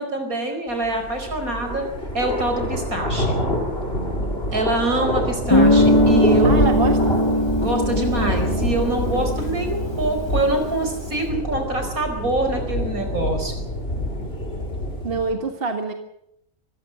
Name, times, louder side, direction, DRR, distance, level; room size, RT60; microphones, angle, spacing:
voice 1, 0.0-1.9 2.1-3.4 4.5-6.5 7.6-13.5, right 2 dB, 70° right, 5 dB, 5.2 m, -25 dB
sound 1, 0.8-15.3, equal, 40° left, 4.2 m, -26 dB
Guitar, 5.5-10.1, left 1 dB, 20° left, 1.1 m, -20 dB
voice 2, 6.4-7.2 15.0-15.9, right 4 dB, 40° right, 6 dB, 1.9 m, -25 dB
sound 2, 9.1-10.0 10.4-10.5, left 1 dB, 75° left, 3.0 m, -34 dB
25.5 x 14.5 x 7.7 m, 0.77 s
omnidirectional pair, 1.6 m